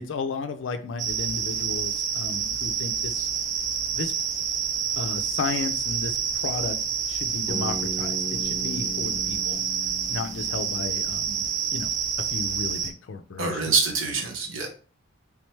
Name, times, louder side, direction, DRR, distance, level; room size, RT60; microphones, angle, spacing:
voice 1, 0.0-3.3 3.9-4.1 5.0-6.8 7.1-9.6 10.1-11.4 11.7-11.9 12.3-13.7, left 4 dB, 65° left, 8 dB, 0.4 m, -33 dB
sound 1, 1.0-12.9, right 7 dB, 35° right, 0.4 m, -28 dB
Bass guitar, 7.5-11.6, left 1 dB, ahead, 1.0 m, -38 dB
voice 2, 13.4-14.7, right 4 dB, 85° right, 1 dB, 0.9 m, -25 dB
3.4 x 3.2 x 3.1 m, 0.39 s
head